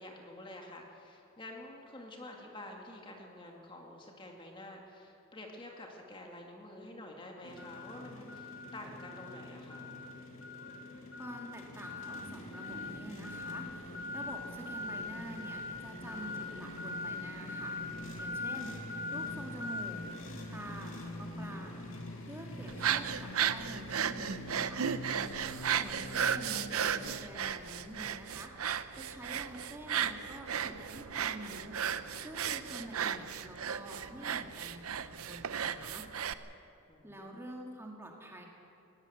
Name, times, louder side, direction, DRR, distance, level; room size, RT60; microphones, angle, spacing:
voice 1, 0.0-9.9 25.6-26.0 36.9-37.4, left 1 dB, 25° left, 1 dB, 2.1 m, -49 dB
sound 1, 7.4-27.2, left 2 dB, 65° left, 2.6 m, -43 dB
voice 2, 11.2-17.8 18.2-18.7 19.1-20.0 20.5-21.8 22.3-24.9 25.7-28.5 28.9-36.0 37.0-38.5, equal, 10° right, 0 dB, 2.1 m, -47 dB
sound 2, 12.7-22.2, left 2 dB, 80° left, 1.5 m, -50 dB
sound 3, 22.7-36.3, right 8 dB, 80° right, 0.7 m, -35 dB
19.0 x 17.5 x 8.0 m, 2.7 s
head